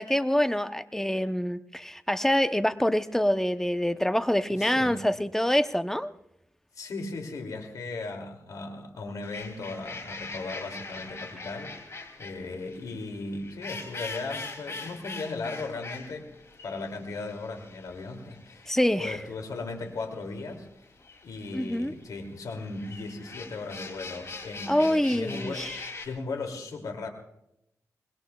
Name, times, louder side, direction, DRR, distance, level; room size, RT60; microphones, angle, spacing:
voice 1, 0.0-6.1 18.7-19.2 21.5-21.9 24.7-25.7, left 1 dB, 5° left, 10 dB, 0.7 m, -26 dB
voice 2, 4.5-5.0 6.7-11.8 12.2-16.3 16.6-20.7 21.2-27.1, left 3 dB, 85° left, 4 dB, 2.5 m, -37 dB
sound 1, 9.2-26.1, left 3 dB, 50° left, 2.7 m, -42 dB
24.0 x 21.0 x 2.3 m, 0.81 s
cardioid pair, 75°, 6 cm